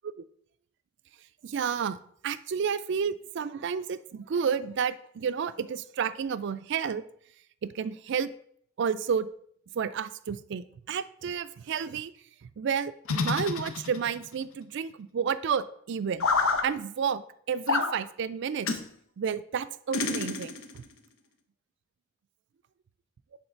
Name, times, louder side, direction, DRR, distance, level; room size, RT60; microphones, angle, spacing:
voice 1, 1.4-2.0 2.2-7.0 7.6-8.3 8.8-9.3 9.7-12.1 12.4-16.3 16.6-18.7 19.2-20.8, right 7 dB, 60° right, 14 dB, 0.4 m, -31 dB
sound 1, 13.1-14.3 16.2-16.6 17.7-17.9 18.6-18.9 19.9-20.8, left 4 dB, 85° left, 0.7 m, -28 dB
8.0 x 3.7 x 4.4 m, 0.64 s
head